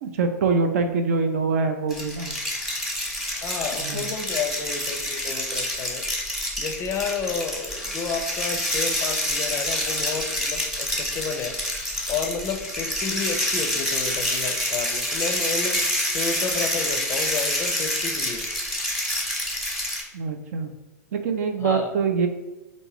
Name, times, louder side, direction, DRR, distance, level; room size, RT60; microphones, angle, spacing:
voice 1, 0.0-2.4 3.8-4.0 20.1-20.7 21.1-22.3, right 4 dB, 60° right, 7 dB, 0.5 m, -24 dB
sound 1, 1.9-20.0, left 1 dB, ahead, 0.9 m, -27 dB
voice 2, 3.3-6.0 6.6-11.6 12.1-15.8 16.1-18.5 21.6-21.9, left 5 dB, 30° left, 5 dB, 0.4 m, -31 dB
3.5 x 2.6 x 3.2 m, 1.1 s
figure-of-eight pair, 100°, 9 cm